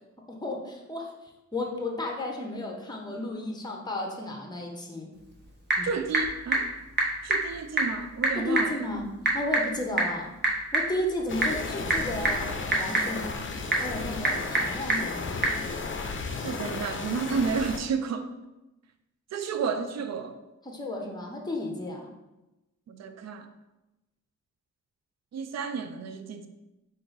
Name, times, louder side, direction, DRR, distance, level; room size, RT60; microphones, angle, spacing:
voice 1, 0.3-1.1 1.5-5.1 5.8-5.9 8.4-9.1 9.3-10.3 10.7-13.5 13.8-15.5 20.6-22.1, left 1 dB, 15° left, 1 dB, 0.8 m, -33 dB
Typing / Telephone, 5.1-15.6, right 2 dB, 35° right, 1.0 m, -29 dB
voice 2, 5.8-6.7 7.2-8.8 16.4-18.3 19.3-20.4 22.9-23.5 25.3-26.5, right 5 dB, 60° right, 8 dB, 0.5 m, -31 dB
sound 1, 11.3-17.8, left 4 dB, 40° left, 0.5 m, -34 dB
4.6 x 2.6 x 3.9 m, 0.99 s
cardioid pair, 70°, 30 cm